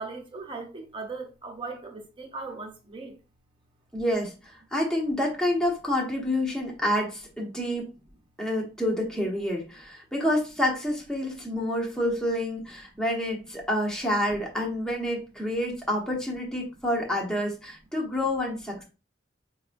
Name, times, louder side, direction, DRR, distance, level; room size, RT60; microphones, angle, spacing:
voice 1, 0.0-3.1, right 3 dB, 30° right, 0.7 m, -38 dB
voice 2, 3.9-7.9 8.4-18.8, left 1 dB, 5° left, 0.9 m, -28 dB
4.7 x 2.3 x 2.5 m
head